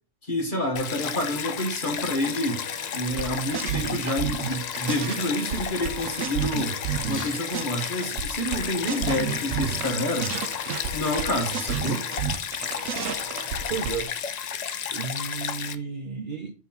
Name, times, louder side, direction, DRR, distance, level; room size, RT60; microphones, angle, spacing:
voice 1, 0.2-2.6 2.9-6.8 7.1-10.4 10.9-12.1, left 1 dB, 40° left, 1.6 m, -28 dB
Stream, 0.8-15.8, left 8 dB, 80° left, 0.3 m, -33 dB
sound 1, 2.2-13.9, left 3 dB, 25° left, 0.8 m, -42 dB
sound 2, 3.2-5.2 5.5-7.9 8.2-9.9 10.2-14.0, right 9 dB, 85° right, 1.0 m, -31 dB
voice 2, 13.7-14.1 14.9-16.5, right 5 dB, 45° right, 0.9 m, -33 dB
5.8 x 3.6 x 5.8 m
omnidirectional pair, 1.3 m